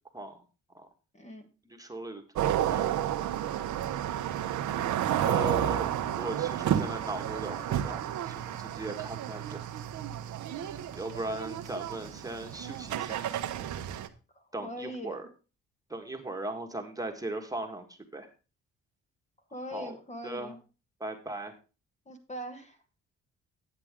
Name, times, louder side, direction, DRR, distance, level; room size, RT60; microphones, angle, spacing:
voice 1, 1.1-1.5 14.3-15.2 19.5-20.6 22.1-22.8, equal, 20° left, 5 dB, 1.4 m, -41 dB
voice 2, 1.6-3.0 5.2-9.6 10.9-13.4 14.5-15.3 15.9-18.3 19.7-20.0 20.2-20.5 21.0-21.6, right 2 dB, 10° right, 3 dB, 1.6 m, -38 dB
sound 1, 2.4-14.1, right 11 dB, 75° right, 0.9 m, -31 dB
10.0 x 8.0 x 3.6 m, 0.32 s
cardioid pair, 90°, 30 cm